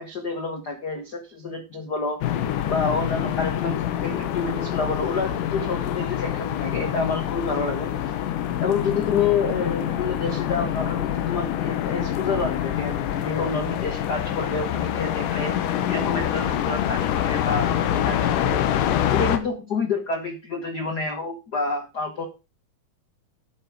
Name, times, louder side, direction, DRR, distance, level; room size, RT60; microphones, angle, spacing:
voice 1, 0.0-2.2 2.7-7.9 8.6-15.5 15.9-18.7 19.1-22.3, left 4 dB, 90° left, 5 dB, 0.8 m, -28 dB
sound 1, 2.2-19.4, left 11 dB, 75° left, 2.4 m, -26 dB
9.2 x 8.1 x 4.7 m, 0.29 s
omnidirectional pair, 4.0 m